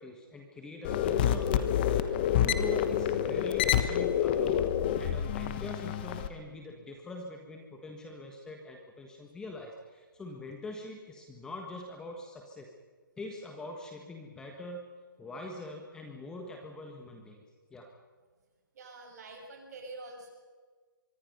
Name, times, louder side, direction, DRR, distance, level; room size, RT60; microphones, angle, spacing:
voice 1, 0.0-4.7 5.0-12.7 13.2-14.8 15.2-17.4 17.7-17.9, left 2 dB, 5° left, 2 dB, 1.5 m, -43 dB
sound 1, 0.8-6.3, left 9 dB, 25° left, 1.2 m, -28 dB
voice 2, 18.7-20.3, right 2 dB, 50° right, 2 dB, 7.1 m, -46 dB
24.5 x 24.0 x 5.5 m, 1.5 s
hypercardioid pair, 160°, 12 cm